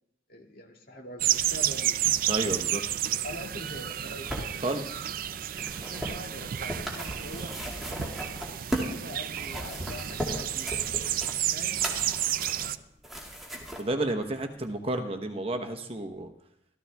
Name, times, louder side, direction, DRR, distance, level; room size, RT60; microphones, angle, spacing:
voice 1, 0.3-2.0 3.2-4.3 5.7-7.5 8.8-10.7 10.9-11.2 11.5-11.8, left 1 dB, 55° left, 0 dB, 2.1 m, -43 dB
sound 1, 1.2-12.8, right 11 dB, 50° right, 0.4 m, -31 dB
voice 2, 2.3-2.8 4.6-5.1 13.8-16.3, right 2 dB, 35° right, 5 dB, 0.9 m, -31 dB
sound 2, 3.9-9.0 9.3-13.8 14.6-14.7, equal, ahead, 2.1 m, -37 dB
14.5 x 14.0 x 3.4 m, 0.80 s
head